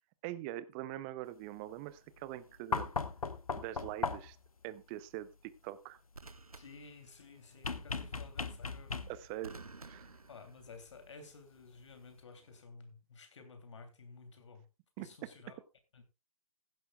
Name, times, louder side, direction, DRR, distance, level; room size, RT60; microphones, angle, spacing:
voice 1, 0.2-2.9 3.6-4.4 4.6-6.0 9.1-9.6 9.9-10.1 15.0-15.3, right 14 dB, 20° right, 0.6 m, -43 dB
sound 1, 2.3-2.6 6.1-7.6 9.4-11.1 12.3-12.6, right 3 dB, 85° right, 1.2 m, -54 dB
sound 2, 2.7-4.5 7.6-9.4 10.9-11.0, left 4 dB, 75° left, 1.0 m, -37 dB
voice 2, 6.6-9.0 10.3-14.7 15.0-15.6 15.9-16.0, left 4 dB, 55° left, 3.0 m, -53 dB
15.5 x 11.5 x 2.3 m
figure-of-eight pair, 135°, 18 cm